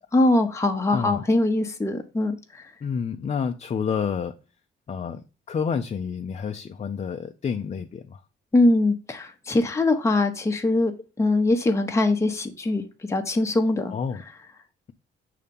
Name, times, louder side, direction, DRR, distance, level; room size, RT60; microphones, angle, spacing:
voice 1, 0.1-2.6 8.5-13.9, left 2 dB, 15° left, 0.8 m, -22 dB
voice 2, 0.9-1.2 2.8-4.3 4.9-8.2 13.9-14.2, left 6 dB, 35° left, 0.5 m, -29 dB
6.5 x 2.9 x 5.2 m
cardioid pair, 90°, 20 cm